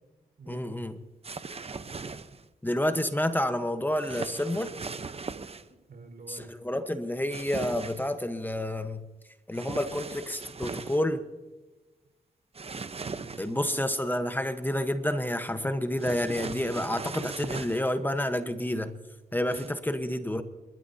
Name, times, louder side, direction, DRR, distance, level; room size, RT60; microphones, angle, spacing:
voice 1, 0.5-0.9 2.6-4.7 6.3-9.1 9.5-11.2 13.4-18.9 19.3-20.4, left 1 dB, 10° left, 8 dB, 1.1 m, -29 dB
sound 1, 1.2-2.4 4.0-5.7 7.3-8.1 9.5-11.0 12.5-13.7 16.0-17.9 19.5-19.7, right 4 dB, 40° right, 0.9 m, -38 dB
voice 2, 5.4-6.5 13.0-13.8, right 4 dB, 70° right, 4 dB, 4.8 m, -48 dB
30.0 x 12.5 x 2.8 m, 1.2 s
cardioid pair, 65°, 16 cm